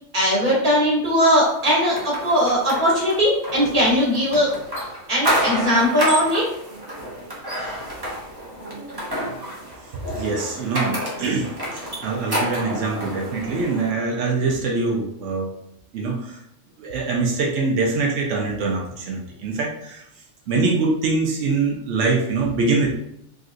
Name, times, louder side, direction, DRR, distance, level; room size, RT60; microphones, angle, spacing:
voice 1, 0.1-4.5 5.1-6.5, equal, 45° right, -5 dB, 1.4 m, -19 dB
sound 1, 1.6-13.9, equal, 25° right, 0.7 m, -29 dB
voice 2, 10.1-15.5 15.9-16.4 16.8-20.0 20.5-22.9, right 3 dB, 85° right, 0 dB, 0.9 m, -24 dB
3.7 x 2.5 x 2.4 m, 0.78 s
omnidirectional pair, 1.2 m